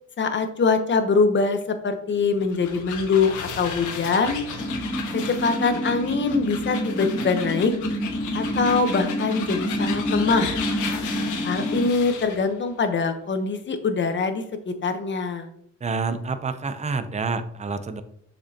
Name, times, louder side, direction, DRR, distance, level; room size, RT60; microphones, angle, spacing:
voice 1, 0.2-4.4 5.1-7.7 8.3-10.5 11.4-15.5, left 4 dB, 40° left, 7 dB, 1.0 m, -23 dB
sound 1, 2.3-12.4, left 6 dB, 85° left, 1.3 m, -35 dB
sound 2, 4.6-11.9, equal, 5° left, 1.5 m, -28 dB
voice 2, 15.8-18.0, right 4 dB, 25° right, 11 dB, 0.6 m, -28 dB
6.7 x 5.3 x 2.9 m, 0.70 s
cardioid pair, 90°, 30 cm